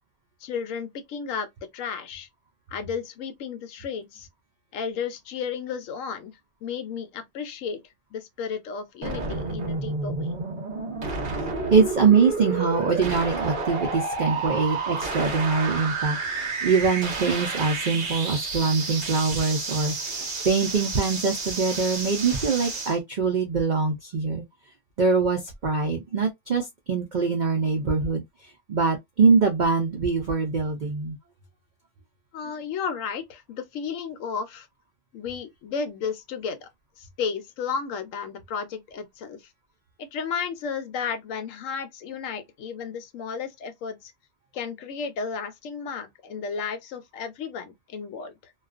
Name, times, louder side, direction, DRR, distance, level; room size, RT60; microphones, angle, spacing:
voice 1, 0.4-1.5 1.7-2.3 2.7-4.3 4.7-7.8 8.1-10.3 32.3-34.7 35.1-36.7 37.0-39.5 40.0-44.1 44.5-48.5, left 6 dB, 70° left, 0.9 m, -33 dB
sound 1, 9.0-23.0, right 3 dB, 45° right, 0.7 m, -30 dB
voice 2, 11.7-24.4 25.0-28.2 28.7-31.2, right 5 dB, 90° right, 0.4 m, -23 dB
2.3 x 2.2 x 2.3 m
omnidirectional pair, 1.5 m